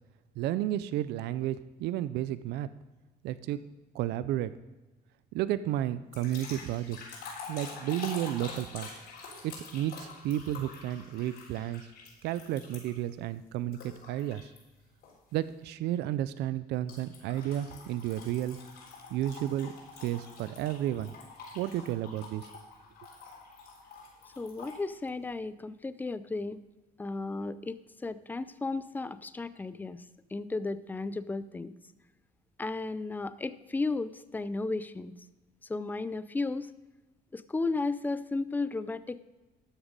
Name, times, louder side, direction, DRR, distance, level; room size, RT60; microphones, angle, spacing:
voice 1, 0.4-2.7 3.2-3.6 3.9-4.5 5.3-7.0 7.5-8.9 9.4-11.8 12.2-14.5 15.3-18.6 19.1-19.7 20.0-21.1 21.5-22.5, right 12 dB, 80° right, 15 dB, 0.5 m, -32 dB
sound 1, 6.1-13.1 13.7-14.6 15.0-15.3 16.9-24.8, left 4 dB, 75° left, 3.7 m, -46 dB
voice 2, 24.4-26.6 27.0-30.1 30.3-31.7 32.6-35.1 35.7-36.7 37.3-39.2, left 3 dB, 10° left, 15 dB, 0.4 m, -34 dB
12.5 x 7.3 x 5.2 m, 1.1 s
cardioid pair, 110°, 17 cm